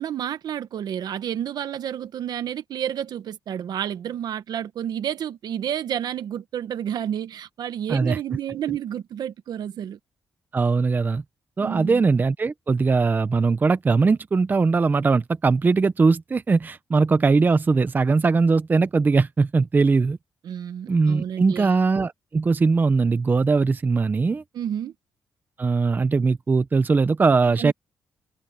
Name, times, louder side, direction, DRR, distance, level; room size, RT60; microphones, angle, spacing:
voice 1, 0.0-10.0 11.6-12.0 20.4-21.7 24.5-24.9 27.6-27.7, right 9 dB, 75° right, 1.3 m, -30 dB
voice 2, 10.5-11.2 11.6-20.2 20.9-24.4 25.6-27.7, right 4 dB, 25° right, 0.7 m, -20 dB
cardioid pair, 125°, 7 cm